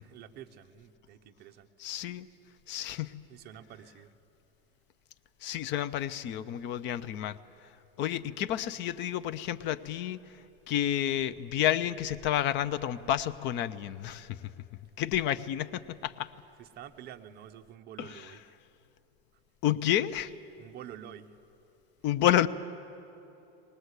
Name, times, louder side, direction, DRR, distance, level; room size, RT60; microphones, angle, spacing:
voice 1, 0.0-1.7 3.3-4.1 16.6-18.6 20.6-21.4, right 10 dB, 30° right, 6 dB, 0.8 m, -48 dB
voice 2, 1.8-2.3 2.7-3.1 5.4-7.4 8.0-10.2 10.7-14.4 15.0-16.3 18.0-18.3 19.6-20.3 22.0-22.5, left 11 dB, 40° left, 14 dB, 0.6 m, -30 dB
20.0 x 19.5 x 8.1 m, 2.9 s
supercardioid pair, 145°, 31 cm